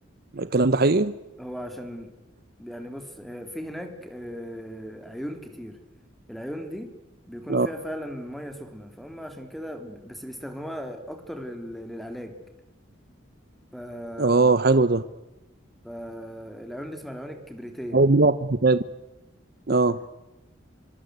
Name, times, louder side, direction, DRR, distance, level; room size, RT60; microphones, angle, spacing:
voice 1, 0.3-1.1 7.5-7.7 14.2-15.0 17.9-18.8 19.7-20.0, right 3 dB, 55° right, 13 dB, 0.8 m, -20 dB
voice 2, 1.4-2.1 2.6-5.8 6.3-7.0 7.3-12.3 13.7-14.6 15.8-18.0, equal, ahead, 6 dB, 3.5 m, -37 dB
26.5 x 24.5 x 8.2 m, 1.0 s
head